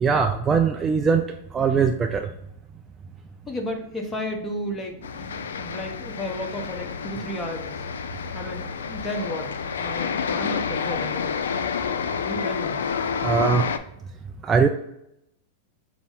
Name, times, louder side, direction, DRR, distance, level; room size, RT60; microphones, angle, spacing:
voice 1, 0.0-1.2 1.5-2.3 13.2-13.6 14.5-14.7, right 5 dB, 20° right, 5 dB, 0.3 m, -20 dB
voice 2, 3.5-5.0 5.6-7.7 8.3-9.5 9.8-11.3 12.2-12.8, left 1 dB, 15° left, 2 dB, 0.9 m, -33 dB
sound 1, 5.0-13.8, left 6 dB, 80° left, 0.3 m, -29 dB
5.2 x 2.0 x 3.7 m, 0.80 s
hypercardioid pair, 110°, 0 cm